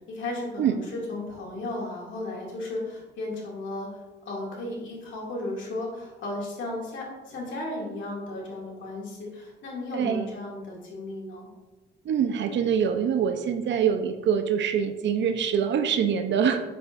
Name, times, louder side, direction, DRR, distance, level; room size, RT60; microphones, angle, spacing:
voice 1, 0.1-3.9 4.2-11.5, left 2 dB, 70° left, -3 dB, 2.4 m, -35 dB
voice 2, 9.9-10.3 12.0-16.6, right 7 dB, 65° right, 7 dB, 0.6 m, -24 dB
7.5 x 7.0 x 2.5 m, 1.1 s
cardioid pair, 90°, 20 cm